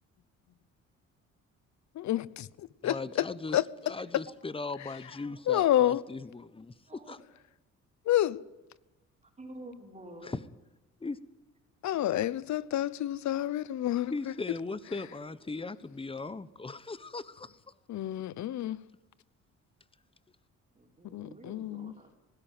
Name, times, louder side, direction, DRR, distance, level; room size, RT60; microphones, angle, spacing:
voice 1, 1.9-3.3 3.5-3.6 5.5-6.0 8.1-8.4 11.8-14.1 17.9-18.8 21.1-21.9, left 13 dB, 70° left, 0.9 m, -29 dB
voice 2, 2.8-3.6 3.8-7.2 10.2-10.4 11.0-11.2 14.1-17.5, left 3 dB, 20° left, 1.1 m, -38 dB
voice 3, 9.2-10.3 14.9-15.0 15.4-15.7 20.7-22.2, right 1 dB, 25° right, 4.4 m, -49 dB
18.5 x 16.0 x 9.3 m
cardioid pair, 90°, 30 cm